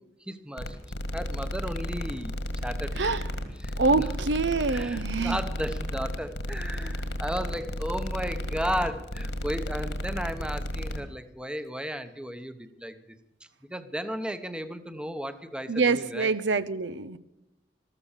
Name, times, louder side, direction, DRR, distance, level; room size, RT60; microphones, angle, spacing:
voice 1, 0.3-0.8 1.1-2.4 2.6-3.2 3.6-4.1 4.7-13.0 13.7-16.3, equal, 5° right, 10 dB, 0.9 m, -34 dB
sound 1, 0.6-11.0, left 1 dB, 70° left, 1.9 m, -33 dB
voice 2, 3.8-5.4 15.7-17.2, right 4 dB, 85° right, 15 dB, 0.8 m, -25 dB
14.0 x 14.0 x 7.3 m, 0.90 s
head